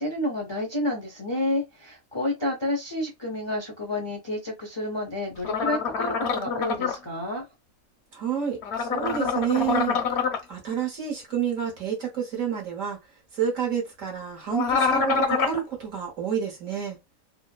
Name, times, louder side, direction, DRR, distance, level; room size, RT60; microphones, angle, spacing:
voice 1, 0.0-7.5, left 1 dB, 40° left, 0.4 m, -30 dB
sound 1, 5.4-7.0 8.6-10.4 14.5-15.6, left 5 dB, 60° left, 0.8 m, -25 dB
voice 2, 8.1-10.2 10.5-13.0 13.3-17.0, right 8 dB, 60° right, 1.4 m, -29 dB
3.1 x 2.0 x 2.3 m
omnidirectional pair, 1.6 m